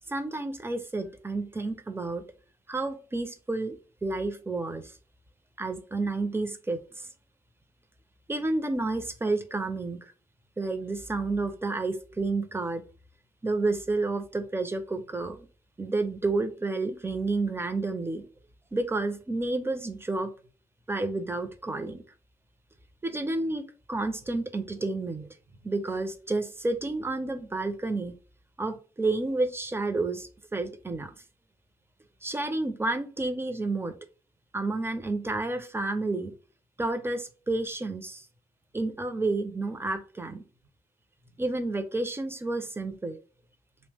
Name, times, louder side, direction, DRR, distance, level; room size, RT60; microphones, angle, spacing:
voice 1, 0.1-2.2 2.7-3.7 4.0-4.9 5.6-7.1 8.3-10.1 10.6-12.8 13.4-15.5 15.8-18.2 18.7-20.3 20.9-22.0 23.0-23.6 23.9-25.3 25.6-28.1 28.6-31.1 32.2-33.9 34.5-36.3 36.8-38.3 38.7-40.4 41.4-43.2, right 2 dB, 20° right, 9 dB, 0.6 m, -30 dB
2.8 x 2.1 x 3.3 m, 0.38 s
cardioid pair, 55°, 13 cm